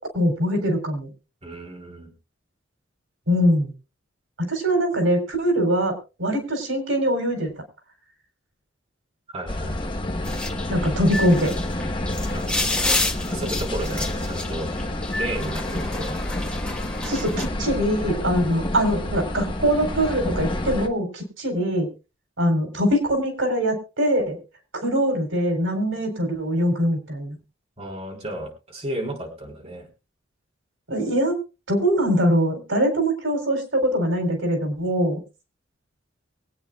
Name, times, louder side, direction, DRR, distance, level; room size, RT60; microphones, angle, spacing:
voice 1, 0.1-1.1 3.3-3.7 4.4-7.5 10.7-11.5 17.0-21.9 22.4-24.4 24.8-27.4 30.9-31.4 31.7-35.2, equal, 90° right, 5 dB, 4.1 m, -22 dB
voice 2, 1.4-2.1 9.3-9.8 12.3-12.7 13.3-14.7 15.1-16.2 27.8-29.9, right 1 dB, 35° right, -1 dB, 3.9 m, -33 dB
sound 1, 9.5-20.9, left 1 dB, 25° left, 1.1 m, -29 dB
sound 2, 10.2-17.5, left 2 dB, 5° left, 1.7 m, -30 dB
23.5 x 9.1 x 2.4 m, 0.30 s
head